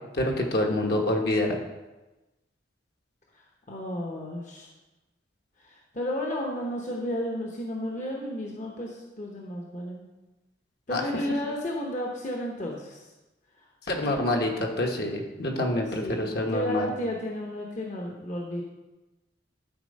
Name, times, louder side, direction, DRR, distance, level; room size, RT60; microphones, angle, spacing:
voice 1, 0.1-1.6 10.9-11.1 13.9-16.9, left 1 dB, 60° left, 1 dB, 1.3 m, -26 dB
voice 2, 3.7-4.7 5.6-10.1 10.9-13.1 13.6-13.7 14.0-14.1 15.7-18.6, equal, 40° left, -1 dB, 1.0 m, -33 dB
11.5 x 4.3 x 5.3 m, 1.1 s
head